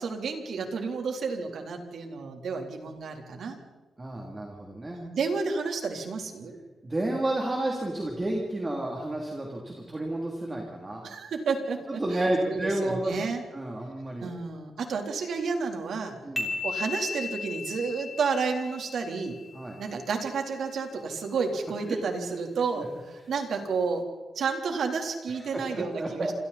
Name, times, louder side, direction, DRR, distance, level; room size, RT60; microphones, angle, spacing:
voice 1, 0.0-3.6 4.9-6.6 11.0-13.4 14.2-16.2 16.6-19.4 19.8-24.0 24.4-26.3, right 5 dB, 65° right, 3 dB, 3.6 m, -31 dB
voice 2, 4.0-5.0 6.8-11.0 11.9-13.1 13.4-14.3 16.2-16.5 19.5-19.8 21.3-21.4 21.9-22.0 22.8-22.9 25.3-26.3, right 1 dB, 20° right, 0 dB, 3.1 m, -31 dB
sound 1, 16.4-19.9, left 4 dB, ahead, 3.4 m, -36 dB
29.0 x 27.0 x 4.3 m, 1.3 s
wide cardioid pair, 160°, 0 cm